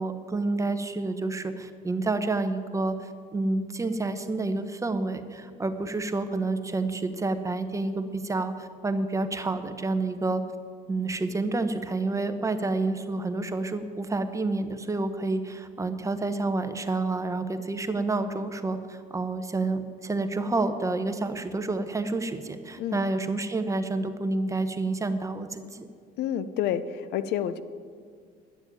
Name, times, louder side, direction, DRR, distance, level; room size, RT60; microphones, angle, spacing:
voice 1, 0.0-10.4 10.9-25.9, right 3 dB, 20° right, 8 dB, 0.9 m, -29 dB
voice 2, 26.2-27.6, left 10 dB, 75° left, 13 dB, 0.6 m, -29 dB
10.5 x 7.1 x 9.1 m, 2.1 s
cardioid pair, 110°, 17 cm